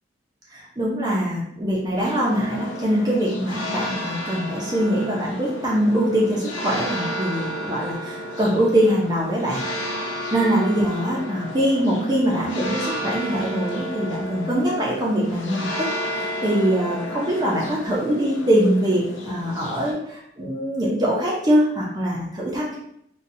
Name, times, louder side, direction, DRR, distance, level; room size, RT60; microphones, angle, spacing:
voice 1, 0.5-9.6 10.3-15.9 16.1-22.8, equal, 20° right, -4 dB, 0.6 m, -23 dB
sound 1, 2.0-19.9, equal, 85° left, 0.5 m, -32 dB
4.0 x 2.3 x 2.6 m, 0.73 s
head